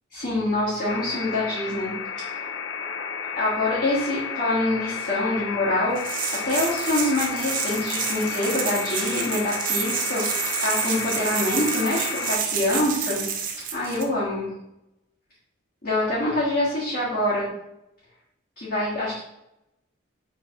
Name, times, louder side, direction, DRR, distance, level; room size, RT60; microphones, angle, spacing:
voice 1, 0.1-1.9 2.3-2.4 3.3-13.2 13.7-14.5 15.8-17.5 18.6-19.2, left 1 dB, 55° left, -11 dB, 1.5 m, -25 dB
sound 1, 0.9-12.4, left 6 dB, 75° left, 0.4 m, -32 dB
sound 2, 6.0-14.0, right 7 dB, 45° right, 0.5 m, -29 dB
4.6 x 3.2 x 3.0 m, 0.85 s
head